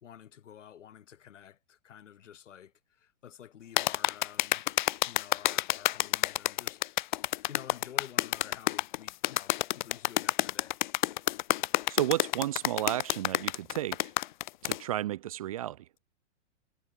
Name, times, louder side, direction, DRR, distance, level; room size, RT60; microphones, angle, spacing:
voice 1, 0.0-4.7 5.0-10.8, left 9 dB, 85° left, 3.0 m, -50 dB
sound 1, 3.8-14.8, left 15 dB, 40° left, 0.5 m, -28 dB
voice 2, 11.9-14.1 14.6-15.8, right 13 dB, 30° right, 0.4 m, -32 dB
hypercardioid pair, 160°, 36 cm